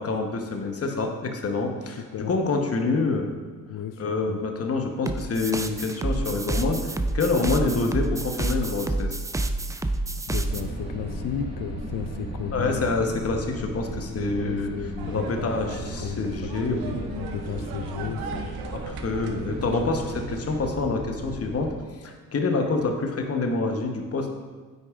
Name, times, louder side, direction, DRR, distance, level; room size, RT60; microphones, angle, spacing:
voice 1, 0.0-3.4 4.0-9.2 12.5-14.7 15.1-17.0 18.7-21.7 22.0-24.3, left 3 dB, 40° left, 3 dB, 1.0 m, -27 dB
voice 2, 2.0-2.3 3.7-4.4 10.3-12.9 14.3-15.5 16.0-18.5, left 9 dB, 65° left, 9 dB, 0.5 m, -34 dB
sound 1, 5.1-10.6, right 2 dB, 10° right, 0.3 m, -28 dB
sound 2, 10.4-21.7, right 1 dB, 45° right, 1.9 m, -36 dB
sound 3, 15.0-20.6, right 4 dB, 90° right, 0.6 m, -38 dB
9.3 x 4.7 x 2.4 m, 1.4 s
supercardioid pair, 60°, 35 cm